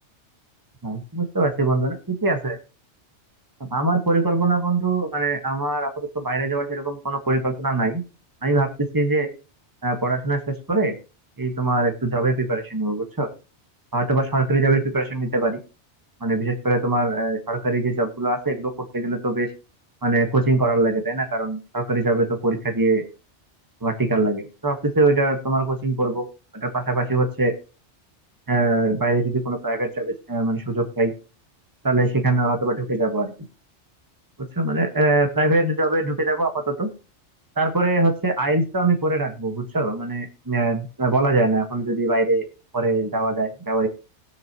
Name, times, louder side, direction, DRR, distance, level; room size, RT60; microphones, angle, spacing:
voice 1, 0.8-2.6 3.6-8.0 8.4-9.3 9.8-11.0 11.4-13.3 13.9-15.6 16.2-19.5 20.0-23.0 23.8-26.3 26.6-27.5 28.5-31.1 31.8-33.3 34.5-36.9 37.6-42.4 42.7-43.9, right 2 dB, 20° right, 4 dB, 1.5 m, -22 dB
19.0 x 6.7 x 3.0 m, 0.33 s
omnidirectional pair, 1.2 m